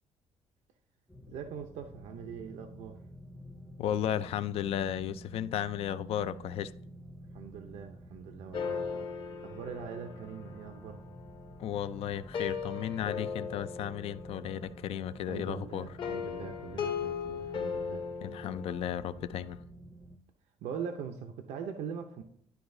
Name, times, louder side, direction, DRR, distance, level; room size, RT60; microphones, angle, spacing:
sound 1, 1.1-20.2, right 1 dB, 5° left, 0.6 m, -49 dB
voice 1, 1.3-3.0 7.3-11.0 15.3-18.0 20.6-22.2, right 7 dB, 80° right, 0.6 m, -42 dB
voice 2, 3.8-6.7 11.6-15.9 18.2-19.6, left 10 dB, 60° left, 0.4 m, -34 dB
sound 2, 8.5-11.5 12.1-14.8 16.0-19.3, left 6 dB, 45° left, 1.0 m, -38 dB
11.5 x 4.7 x 2.6 m
cardioid pair, 170°, 11 cm